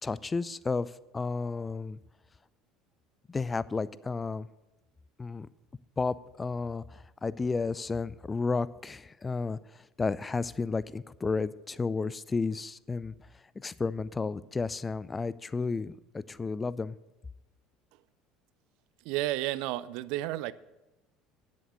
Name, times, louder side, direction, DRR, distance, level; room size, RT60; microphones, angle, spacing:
voice 1, 0.0-2.0 3.3-4.5 5.2-5.5 6.0-13.1 13.6-17.0, left 4 dB, 20° left, 19 dB, 0.4 m, -32 dB
voice 2, 19.1-20.5, right 15 dB, 55° right, 18 dB, 0.4 m, -31 dB
10.0 x 7.5 x 6.9 m, 0.98 s
figure-of-eight pair, 65°, 0 cm